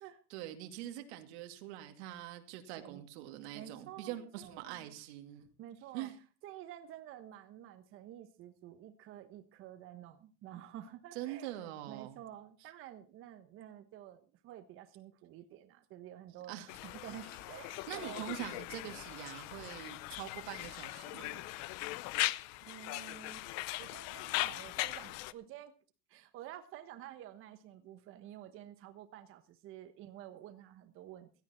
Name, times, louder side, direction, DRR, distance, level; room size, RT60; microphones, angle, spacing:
voice 1, 0.3-5.5 5.9-6.2 11.1-12.2 16.5-16.7 17.9-21.5, right 13 dB, 90° right, 6 dB, 2.4 m, -44 dB
voice 2, 3.5-4.9 5.6-6.1 6.4-11.5 11.9-16.6 16.8-18.3 22.6-23.5 23.8-25.7 26.1-31.3, right 11 dB, 40° right, 8 dB, 1.2 m, -50 dB
Conversation, 16.7-25.3, left 18 dB, 55° left, 0.7 m, -39 dB
16.5 x 12.5 x 4.4 m, 0.35 s
cardioid pair, 165°, 32 cm